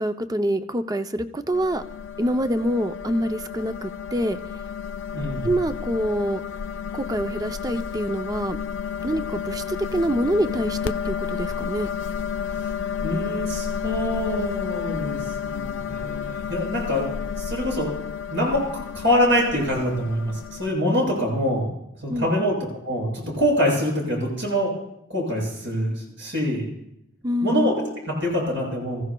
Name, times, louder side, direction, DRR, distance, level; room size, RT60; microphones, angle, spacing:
voice 1, 0.0-1.8 2.2-4.4 5.4-6.4 6.9-8.6 9.0-11.9 22.1-22.6 27.2-27.9, equal, 20° right, 9 dB, 0.5 m, -26 dB
sound 1, 1.5-20.7, left 7 dB, 70° left, 0.4 m, -31 dB
voice 2, 5.1-5.5 13.0-17.1 17.3-17.9 18.3-21.8 22.0-22.6 22.8-24.7 25.1-26.7 27.4-29.0, equal, 70° right, -2 dB, 6.8 m, -25 dB
25.5 x 15.0 x 2.3 m, 0.80 s
head